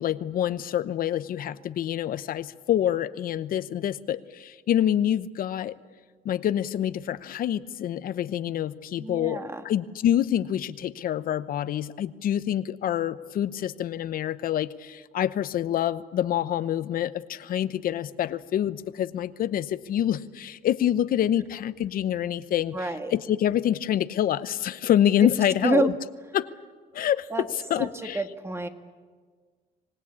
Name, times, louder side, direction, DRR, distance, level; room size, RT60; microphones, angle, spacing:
voice 1, 0.0-5.7 6.2-25.9 26.3-26.5 26.9-28.2, left 11 dB, 60° left, 14 dB, 0.8 m, -26 dB
voice 2, 9.0-9.6 22.7-23.1 25.6-25.9 27.3-27.4 27.8-27.9 28.1-28.7, right 2 dB, 15° right, 7 dB, 1.6 m, -27 dB
25.5 x 18.5 x 8.6 m, 1.5 s
cardioid pair, 110°, 17 cm